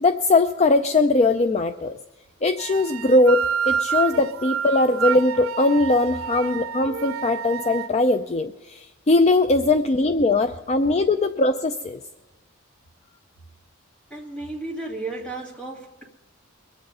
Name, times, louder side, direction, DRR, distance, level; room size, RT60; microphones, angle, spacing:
voice 1, 0.0-2.0 2.4-12.0, left 2 dB, 30° left, 9 dB, 0.4 m, -20 dB
sound 1, 2.6-7.9, right 7 dB, 85° right, 0.7 m, -28 dB
voice 2, 14.1-16.0, right 2 dB, 5° left, 0 dB, 2.1 m, -33 dB
22.0 x 7.8 x 5.5 m, 1.1 s
head